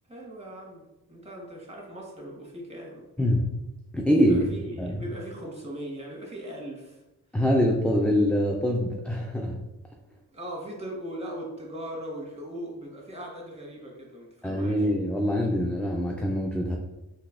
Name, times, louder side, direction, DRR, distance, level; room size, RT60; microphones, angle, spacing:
voice 1, 0.1-3.1 4.3-7.0 10.1-14.9, equal, 15° right, -2 dB, 1.3 m, -39 dB
voice 2, 3.2-3.5 3.9-4.5 4.8-5.1 7.3-9.7 14.4-16.8, equal, 5° left, 0 dB, 0.3 m, -24 dB
3.7 x 2.8 x 2.4 m, 0.98 s
cardioid pair, 40°, 40 cm